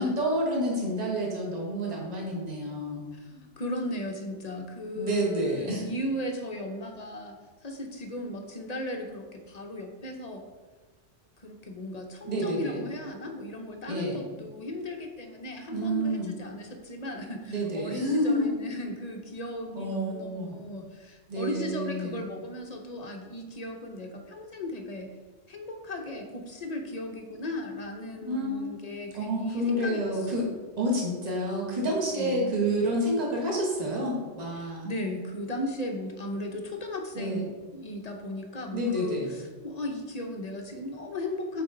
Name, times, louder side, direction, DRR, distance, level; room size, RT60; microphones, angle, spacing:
voice 1, 0.0-3.1 4.9-5.8 12.2-12.8 13.9-14.2 15.7-16.3 17.5-18.5 19.7-20.6 21.3-22.2 28.3-28.7 29.1-30.5 30.8-34.9 37.1-37.5 38.7-39.3, equal, 35° right, -2 dB, 1.5 m, -29 dB
voice 2, 3.1-7.4 7.6-10.4 11.4-25.2 25.5-30.4 32.1-32.6 34.6-37.5 37.7-41.6, left 1 dB, 40° left, 3 dB, 0.7 m, -36 dB
8.0 x 4.5 x 3.8 m, 1.3 s
omnidirectional pair, 1.3 m